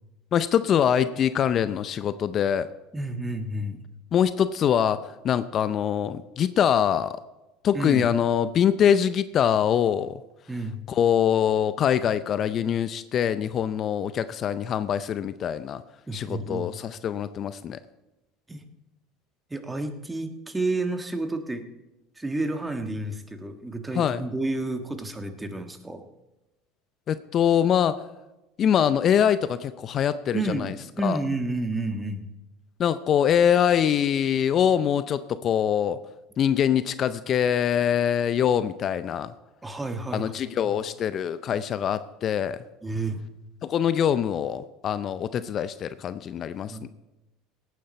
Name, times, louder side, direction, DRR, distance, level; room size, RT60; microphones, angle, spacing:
voice 1, 0.3-2.7 4.1-7.2 7.6-10.2 10.9-15.8 16.1-17.8 23.9-24.3 27.1-28.1 28.6-30.7 31.0-31.2 32.8-36.0 36.4-39.3 40.1-42.6 43.6-46.9, left 9 dB, 45° left, 14 dB, 0.5 m, -24 dB
voice 2, 2.9-3.9 7.7-8.1 10.5-10.8 16.1-16.7 18.5-18.6 19.5-21.6 22.2-26.0 30.3-30.7 31.0-32.3 39.6-40.8 42.8-43.2 46.7-46.9, right 2 dB, 15° right, 6 dB, 1.5 m, -30 dB
17.5 x 9.4 x 4.3 m, 1.0 s
hypercardioid pair, 90°, 0 cm